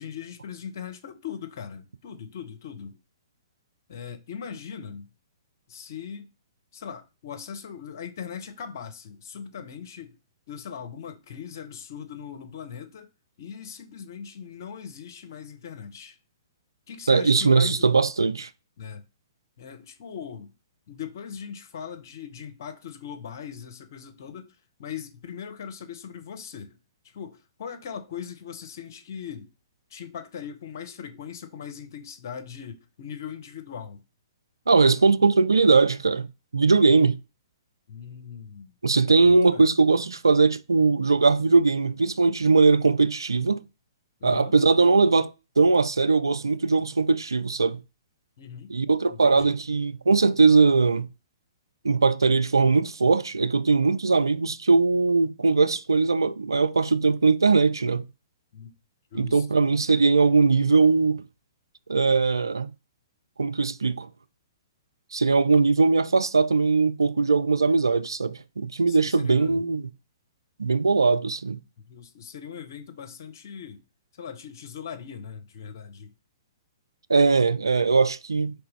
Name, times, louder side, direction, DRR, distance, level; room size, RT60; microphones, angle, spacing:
voice 1, 0.0-3.0 3.9-5.1 5.7-6.3 6.7-10.2 10.5-13.1 13.4-16.2 16.9-17.9 18.8-19.0 19.6-20.5 20.9-26.8 27.0-29.5 29.9-34.0 37.9-38.7 39.2-39.7 44.2-44.5 48.4-48.7 49.1-49.6 58.5-58.7 59.1-59.6 68.9-69.6 71.9-73.8 74.1-76.1, left 7 dB, 50° left, 0.8 m, -40 dB
voice 2, 17.1-18.5 34.7-36.3 36.5-37.2 38.8-43.6 44.2-47.8 48.7-51.1 51.8-58.0 59.1-61.2 61.9-62.7 63.4-64.1 65.1-69.8 70.6-71.6 77.1-78.6, right 4 dB, 75° right, 0.3 m, -20 dB
4.7 x 3.3 x 3.2 m
figure-of-eight pair, 120°, 2 cm